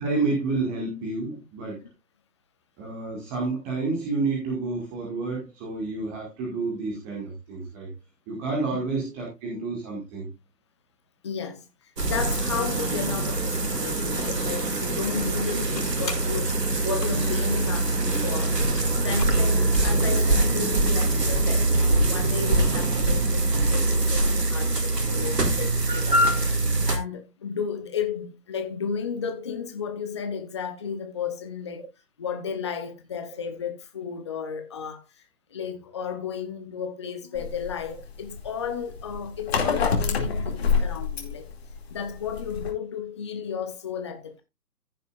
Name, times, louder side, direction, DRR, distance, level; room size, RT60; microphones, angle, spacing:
voice 1, 0.0-1.8 2.8-7.9 8.3-10.3, right 3 dB, 15° right, 1.9 m, -29 dB
voice 2, 11.2-18.6 19.0-21.7 22.1-31.8 32.2-35.0 35.5-41.5 41.9-44.4, left 6 dB, 20° left, 0.8 m, -33 dB
sound 1, 12.0-27.0, right 2 dB, 80° right, 2.5 m, -23 dB
sound 2, 15.4-20.0, left 3 dB, 85° left, 5.2 m, -43 dB
sound 3, 37.4-42.7, left 5 dB, 40° left, 2.4 m, -27 dB
15.0 x 7.0 x 2.4 m
figure-of-eight pair, 150°, 48 cm